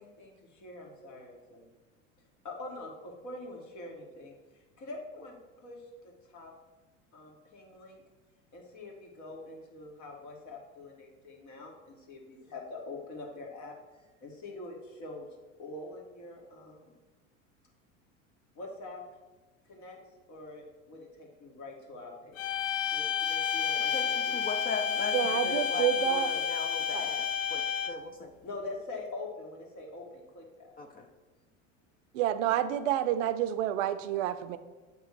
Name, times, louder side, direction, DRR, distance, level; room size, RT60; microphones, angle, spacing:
voice 1, 0.0-1.7 2.4-5.3 5.6-6.5 7.1-8.0 8.5-15.3 15.6-16.9 18.5-19.0 19.7-20.0 20.3-22.4 22.9-24.4 28.4-30.7, left 2 dB, 45° left, 0 dB, 1.7 m, -44 dB
sound 1, 22.4-28.1, left 7 dB, 90° left, 0.5 m, -30 dB
voice 2, 24.3-25.1 25.4-27.6 27.9-28.3 30.8-31.0, left 4 dB, 25° left, 4 dB, 0.5 m, -38 dB
voice 3, 25.1-26.3 26.9-27.0 32.1-34.6, right 11 dB, 70° right, 12 dB, 0.6 m, -29 dB
7.3 x 3.0 x 4.8 m, 1.3 s
hypercardioid pair, 90°, 38 cm